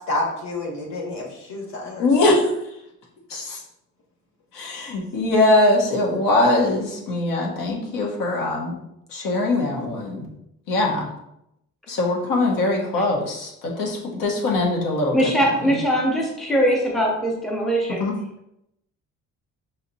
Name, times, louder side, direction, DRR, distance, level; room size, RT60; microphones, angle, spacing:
voice 1, 0.1-2.1, left 2 dB, 55° left, -1 dB, 1.2 m, -29 dB
voice 2, 2.0-2.6 3.3-3.6 4.5-8.8 9.1-10.2 10.7-11.1 11.9-15.3 15.6-15.8 18.0-18.2, left 2 dB, 80° left, -1 dB, 1.1 m, -22 dB
voice 3, 15.1-18.1, equal, ahead, -3 dB, 0.6 m, -21 dB
5.7 x 2.8 x 2.7 m, 0.82 s
cardioid pair, 175°, 32 cm